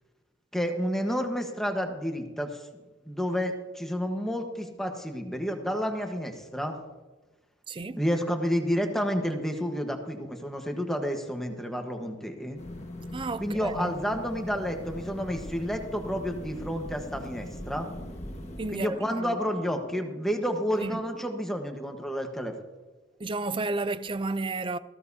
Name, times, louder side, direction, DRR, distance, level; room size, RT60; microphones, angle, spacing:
voice 1, 0.5-2.7 3.0-6.8 8.0-12.6 13.4-17.9 18.7-22.5, equal, ahead, 1.2 m, -30 dB
voice 2, 7.7-8.0 13.1-13.9 18.6-19.4 20.8-21.0 23.2-24.8, right 3 dB, 25° right, 0.5 m, -32 dB
sound 1, 12.6-18.7, left 1 dB, 35° left, 1.5 m, -40 dB
sound 2, 16.5-21.5, right 2 dB, 70° right, 5.5 m, -51 dB
18.5 x 15.0 x 2.8 m
head